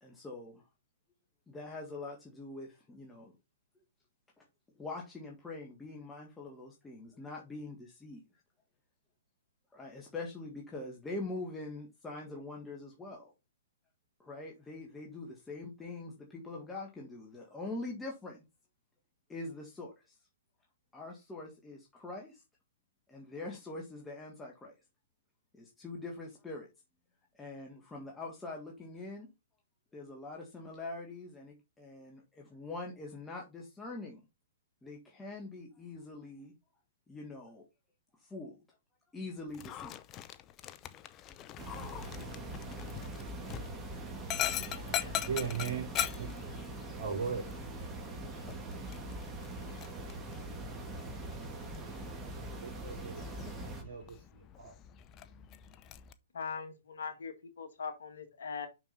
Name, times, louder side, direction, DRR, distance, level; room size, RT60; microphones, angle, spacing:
voice 1, 0.0-0.6 1.5-3.3 4.4-4.5 4.8-8.2 9.7-13.3 14.2-18.4 19.3-20.2 20.9-22.4 23.1-24.7 25.5-26.7 27.3-29.3 29.9-34.2 34.8-36.5 37.1-37.7 38.2-38.6 39.1-40.0 40.7-40.8, left 2 dB, 10° left, 1.7 m, -44 dB
Dog, 39.5-56.1, left 12 dB, 30° left, 0.7 m, -42 dB
sound 1, 41.6-53.8, right 2 dB, 15° right, 2.5 m, -42 dB
voice 2, 44.7-46.4 46.9-47.5 52.6-53.4 53.7-54.8, right 6 dB, 70° right, 2.7 m, -39 dB
voice 3, 56.3-58.7, left 6 dB, 70° left, 1.9 m, -41 dB
6.3 x 6.2 x 4.0 m
hypercardioid pair, 125°, 0 cm